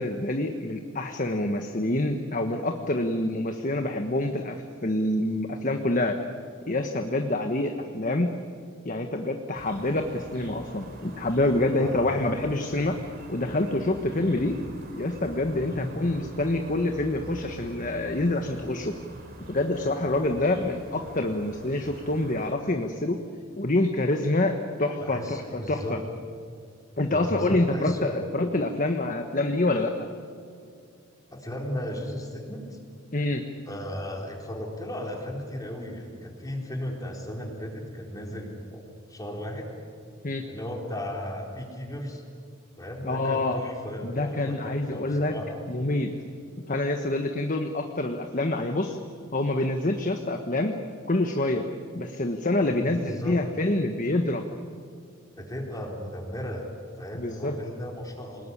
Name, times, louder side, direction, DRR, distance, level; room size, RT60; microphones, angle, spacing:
voice 1, 0.0-6.1 6.7-8.3 8.8-13.0 13.3-14.6 14.9-18.9 19.5-23.2 23.6-26.0 27.0-29.9 33.1-33.4 40.2-40.4 43.0-43.6 44.0-45.4 45.7-46.1 46.7-49.0 49.3-50.7 51.1-51.7 51.9-54.5 57.1-57.6, left 2 dB, 40° left, 5 dB, 1.4 m, -26 dB
sound 1, 9.5-22.5, right 1 dB, 45° right, 4.0 m, -45 dB
voice 2, 15.6-15.9 25.0-26.0 27.1-28.1 31.3-32.8 33.7-39.7 40.5-42.2 42.8-45.6 52.7-53.4 55.4-56.7 57.0-58.5, equal, 15° left, 0 dB, 4.3 m, -36 dB
28.5 x 20.0 x 10.0 m, 2.3 s
head